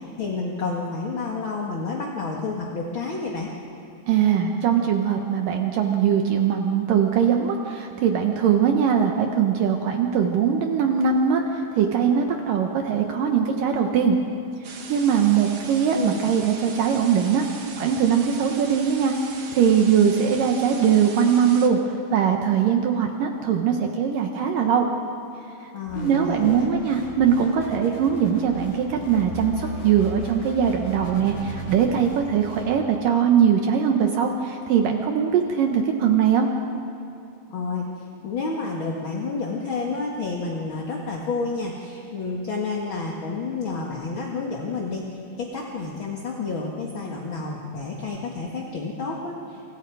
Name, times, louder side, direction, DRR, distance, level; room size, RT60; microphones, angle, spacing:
voice 1, 0.2-3.5 15.9-16.2 25.7-26.6 37.5-49.6, left 4 dB, 45° left, -1 dB, 2.0 m, -30 dB
voice 2, 4.1-14.2 14.9-17.5 17.8-21.8 22.1-24.9 26.0-36.5, right 7 dB, 70° right, 3 dB, 2.6 m, -21 dB
sound 1, 14.6-21.7, right 5 dB, 50° right, 1.8 m, -40 dB
sound 2, 25.9-32.7, equal, 75° left, 4.7 m, -37 dB
30.0 x 26.5 x 4.8 m, 2.6 s
omnidirectional pair, 4.3 m